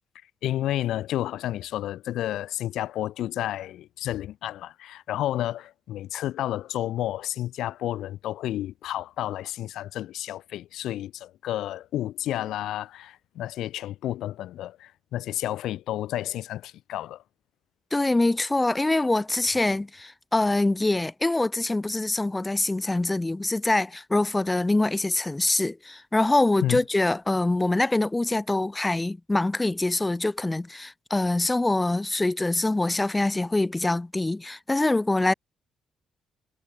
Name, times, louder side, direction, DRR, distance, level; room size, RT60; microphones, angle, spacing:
voice 1, 0.4-17.2 26.6-26.8, left 13 dB, 80° left, 3.9 m, -31 dB
voice 2, 17.9-35.3, left 2 dB, 15° left, 0.8 m, -24 dB
cardioid pair, 90°, 0 cm